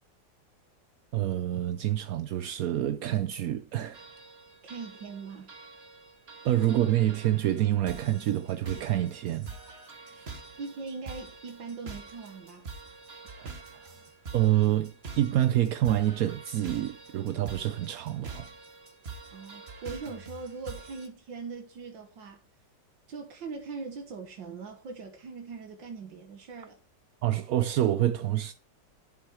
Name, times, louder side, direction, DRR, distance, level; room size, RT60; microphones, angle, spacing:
voice 1, 1.1-4.0 6.4-9.5 10.1-10.3 13.4-13.9 14.3-18.5 27.2-28.5, right 13 dB, 65° right, 0.9 m, -27 dB
sound 1, 3.9-21.1, right 4 dB, 35° right, 1.8 m, -46 dB
voice 2, 4.6-5.5 10.6-12.7 19.3-22.4 23.1-26.8, right 4 dB, 85° right, 2.2 m, -41 dB
11.5 x 7.8 x 4.5 m
omnidirectional pair, 2.0 m